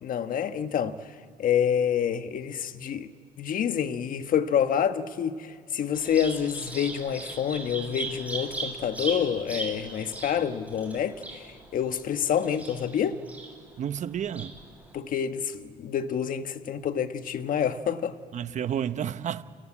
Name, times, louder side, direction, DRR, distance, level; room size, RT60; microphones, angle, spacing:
voice 1, 0.0-1.1 1.4-3.1 3.4-13.2 14.9-18.2, left 8 dB, 55° left, 1.4 m, -28 dB
Bird vocalization bird call bird song, 5.9-14.9, right 3 dB, 10° right, 7.5 m, -39 dB
voice 2, 13.8-14.6 18.3-19.4, right 9 dB, 45° right, 1.0 m, -31 dB
29.0 x 23.5 x 8.7 m
cardioid pair, 110°, 17 cm